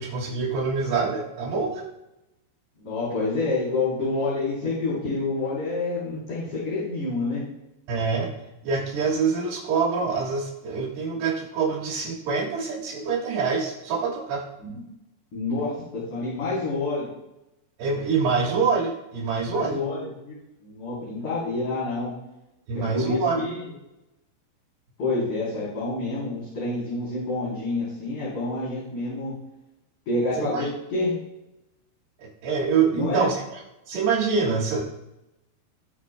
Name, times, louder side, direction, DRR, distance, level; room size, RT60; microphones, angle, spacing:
voice 1, 0.0-1.9 7.9-8.3 8.6-14.4 17.8-19.8 22.7-23.4 30.4-30.7 32.2-33.6 33.9-34.8, right 5 dB, 65° right, -6 dB, 3.9 m, -25 dB
voice 2, 2.8-7.4 14.6-14.8 15.3-15.7 16.1-17.1 19.5-22.1 22.7-23.7 25.0-29.3 30.1-31.1 32.9-33.3, left 2 dB, 45° left, -9 dB, 4.7 m, -28 dB
20.0 x 7.4 x 2.2 m, 0.91 s
omnidirectional pair, 5.5 m